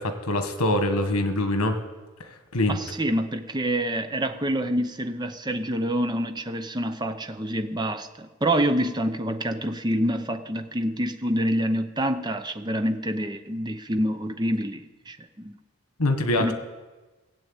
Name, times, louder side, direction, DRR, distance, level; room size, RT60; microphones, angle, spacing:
voice 1, 0.0-1.8 2.5-2.8 16.0-16.5, left 1 dB, 90° left, 7 dB, 1.6 m, -24 dB
voice 2, 2.7-15.5 16.4-16.5, right 1 dB, 20° right, 7 dB, 0.7 m, -27 dB
17.0 x 7.8 x 8.8 m, 1.2 s
head